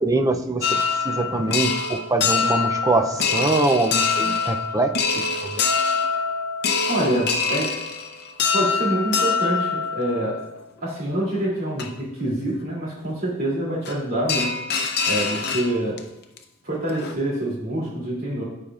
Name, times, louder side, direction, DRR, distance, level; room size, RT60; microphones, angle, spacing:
voice 1, 0.0-5.7, right 2 dB, 15° right, 6 dB, 0.4 m, -23 dB
sound 1, 0.6-10.7 11.3-11.4 11.8-11.9 13.9-14.0 14.3-16.0 16.4-16.5 16.8-17.1, left 5 dB, 50° left, 0.6 m, -24 dB
voice 2, 6.9-7.7 8.5-10.4 10.8-14.5 15.1-16.0 16.6-18.4, right 1 dB, 45° right, -4 dB, 2.8 m, -26 dB
14.5 x 5.1 x 2.4 m, 0.88 s
head